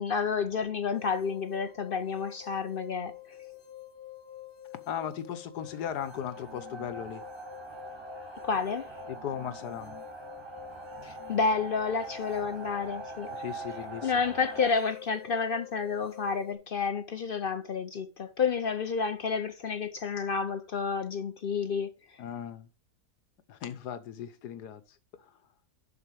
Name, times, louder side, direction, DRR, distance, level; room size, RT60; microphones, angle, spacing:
voice 1, 0.0-3.1 8.4-8.9 11.0-13.3 14.0-21.9, left 5 dB, 65° left, 0.5 m, -30 dB
sound 1, 0.9-16.5, left 12 dB, 45° left, 1.2 m, -48 dB
voice 2, 4.9-7.2 9.1-10.0 13.3-14.1 22.2-22.7 23.5-24.8, left 9 dB, 80° left, 1.5 m, -37 dB
sound 2, 5.6-14.7, right 3 dB, 15° right, 4.7 m, -43 dB
11.5 x 4.8 x 4.8 m
omnidirectional pair, 1.7 m